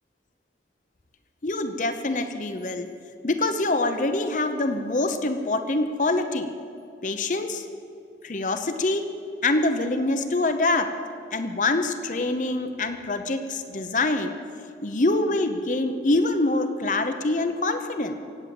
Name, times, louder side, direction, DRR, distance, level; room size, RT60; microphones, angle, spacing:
voice 1, 1.4-2.9 3.2-6.5 7.0-7.7 8.2-9.1 9.4-10.9 11.3-14.3 14.8-18.1, left 2 dB, 45° left, 8 dB, 0.8 m, -25 dB
17.0 x 8.7 x 7.6 m, 2.5 s
head